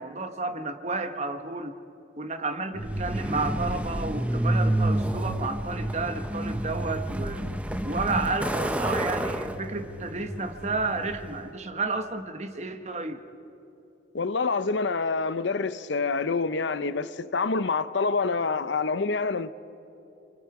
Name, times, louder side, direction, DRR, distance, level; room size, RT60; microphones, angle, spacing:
voice 1, 0.0-1.8 2.2-7.4 7.8-13.2, right 3 dB, 35° right, 1.1 m, -31 dB
Truck, 2.8-11.5, right 1 dB, 5° right, 0.7 m, -29 dB
voice 2, 14.1-19.5, left 4 dB, 75° left, 0.7 m, -27 dB
28.5 x 25.0 x 4.8 m
head